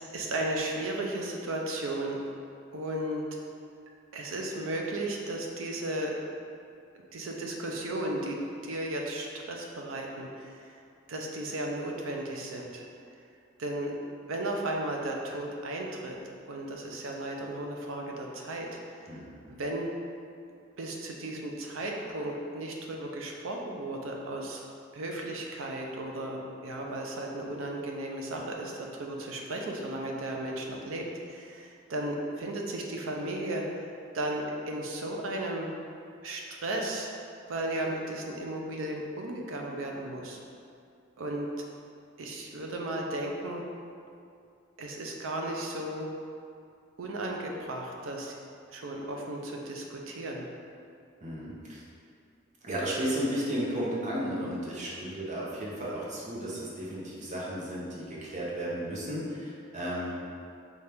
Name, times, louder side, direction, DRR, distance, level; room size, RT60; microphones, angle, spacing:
voice 1, 0.1-2.2 2.7-3.2 4.1-6.2 7.1-10.7 11.1-12.9 13.6-13.9 14.3-16.2 16.5-19.1 19.5-19.9 20.8-24.6 24.9-35.7 36.2-37.1 37.5-40.4 41.2-41.5 42.2-43.6 44.8-46.1 47.0-48.4 48.7-50.5, right 1 dB, 80° right, 0 dB, 0.5 m, -35 dB
voice 2, 51.2-51.8 52.6-60.2, equal, 35° right, -6 dB, 0.7 m, -34 dB
4.3 x 2.4 x 3.3 m, 2.4 s
head